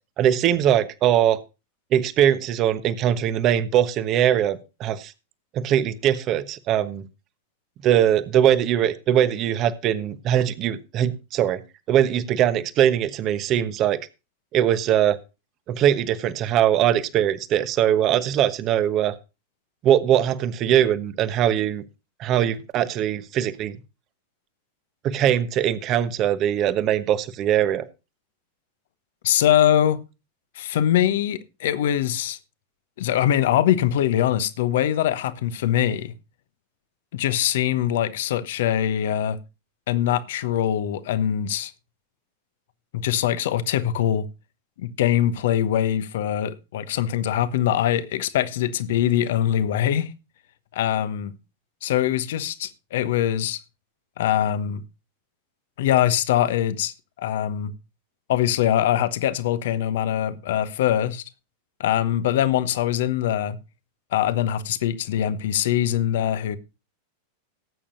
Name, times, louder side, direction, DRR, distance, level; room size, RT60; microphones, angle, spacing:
voice 1, 0.2-1.4 1.9-5.1 5.5-7.0 7.8-11.6 11.9-14.0 14.5-15.2 15.7-19.1 19.8-21.8 22.2-23.8 25.0-27.8, right 10 dB, 35° right, 1.1 m, -21 dB
voice 2, 29.2-30.0 30.5-32.4 33.0-36.1 37.1-39.4 39.9-41.7 42.9-44.3 44.8-50.1 50.7-51.3 51.8-53.6 54.2-54.8 55.8-57.7 58.3-61.2 61.8-63.6 64.1-66.6, left 11 dB, 55° left, 1.0 m, -23 dB
18.5 x 8.7 x 2.7 m
figure-of-eight pair, 90°, 0 cm